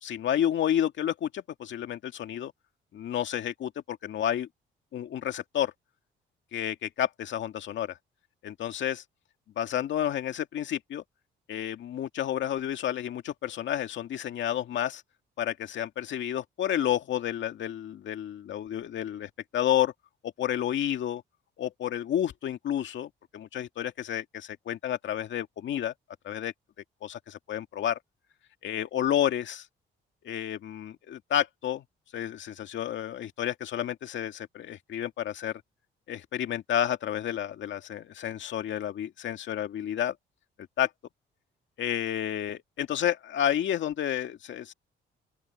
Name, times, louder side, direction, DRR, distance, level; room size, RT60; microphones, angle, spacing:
voice 1, 0.0-2.5 2.9-4.5 4.9-5.7 6.5-8.0 8.4-9.0 9.6-11.0 11.5-15.0 15.4-19.9 20.2-21.2 21.6-25.9 26.2-26.5 27.0-28.0 28.6-29.7 30.2-31.8 32.1-35.6 36.1-40.2 40.8-40.9 41.8-44.7, left 10 dB, 70° left, 2.1 m, -30 dB
open air
cardioid pair, 90°, 20 cm